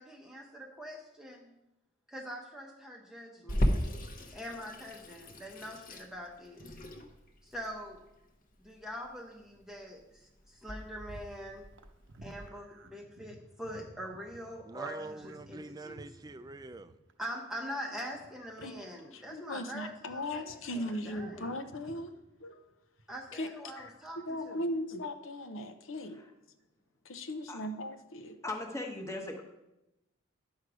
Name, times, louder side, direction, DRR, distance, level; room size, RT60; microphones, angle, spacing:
voice 1, 0.0-1.5 2.1-3.7 4.3-6.7 7.4-8.0 8.6-11.7 12.2-15.0 15.2-16.0 17.2-21.6 23.1-24.6, equal, ahead, 0 dB, 0.8 m, -43 dB
Water tap faucet / Sink (filling or washing), 3.5-12.5, equal, 40° left, 1.0 m, -37 dB
sound 1, 11.7-19.5 19.8-23.3 23.7-24.6, right 1 dB, 55° right, 0.7 m, -56 dB
voice 2, 14.6-17.0, right 3 dB, 20° right, 11 dB, 0.4 m, -45 dB
voice 3, 19.1-22.1 22.4-22.6 23.3-23.5 23.8-26.2 27.0-28.4, left 1 dB, 70° left, 8 dB, 0.8 m, -38 dB
voice 4, 28.4-29.4, left 2 dB, 15° left, 1 dB, 1.1 m, -38 dB
10.0 x 6.4 x 4.8 m, 0.93 s
head